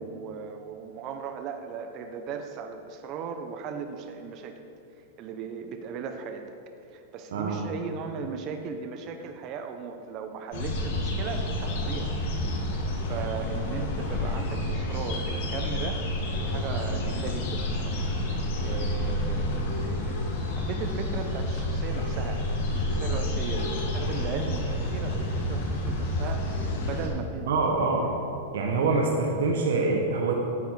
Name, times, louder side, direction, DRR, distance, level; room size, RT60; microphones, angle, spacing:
voice 1, 0.0-4.6 5.2-6.5 6.9-12.1 13.1-20.2 20.6-22.4 22.7-27.5, right 6 dB, 35° right, 6 dB, 0.6 m, -37 dB
voice 2, 7.3-7.7 27.5-28.1 28.5-30.3, right 3 dB, 80° right, 0 dB, 1.2 m, -25 dB
sound 1, 10.5-27.1, left 1 dB, 60° left, 1.8 m, -29 dB
9.6 x 7.1 x 4.6 m, 2.7 s
supercardioid pair, 155°, 0 cm